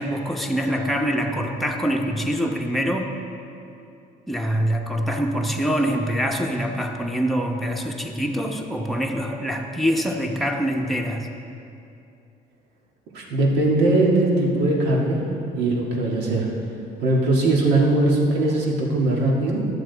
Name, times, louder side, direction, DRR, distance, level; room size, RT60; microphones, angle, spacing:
voice 1, 0.0-3.1 4.3-11.3, equal, ahead, 1 dB, 0.9 m, -24 dB
voice 2, 13.1-15.2 15.6-16.5 17.0-19.6, right 2 dB, 85° right, -2 dB, 1.8 m, -20 dB
12.0 x 7.6 x 4.0 m, 2.7 s
cardioid pair, 110°, 17 cm